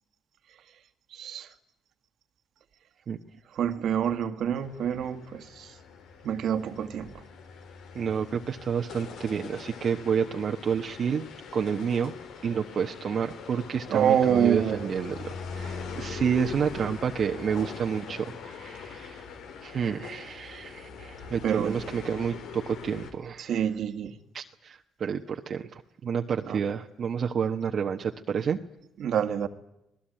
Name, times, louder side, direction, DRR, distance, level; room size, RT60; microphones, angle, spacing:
voice 1, 1.1-1.5 3.5-5.8 6.2-7.2 13.9-14.9 21.4-21.8 23.4-24.2 26.4-26.6 29.0-29.5, right 9 dB, 70° right, 1.9 m, -27 dB
sound 1, 4.6-23.1, left 5 dB, 85° left, 4.2 m, -42 dB
voice 2, 7.9-11.3 11.5-12.1 12.4-19.3 19.6-23.6 24.3-28.6, right 7 dB, 55° right, 1.2 m, -29 dB
26.5 x 19.0 x 9.0 m
cardioid pair, 90°, 0 cm